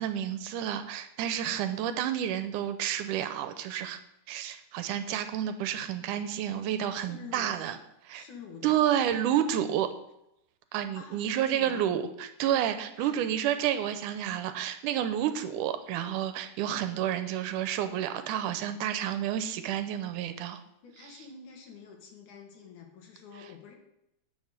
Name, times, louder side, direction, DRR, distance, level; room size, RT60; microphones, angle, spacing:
voice 1, 0.0-4.0 4.3-7.8 8.0-8.2 8.6-9.9 10.7-20.6, right 10 dB, 80° right, 10 dB, 2.2 m, -30 dB
voice 2, 7.0-7.5 8.2-8.9 10.9-12.0 13.0-13.2 20.8-23.8, left 6 dB, 70° left, 2 dB, 3.0 m, -47 dB
9.3 x 6.1 x 6.6 m, 0.83 s
omnidirectional pair, 3.7 m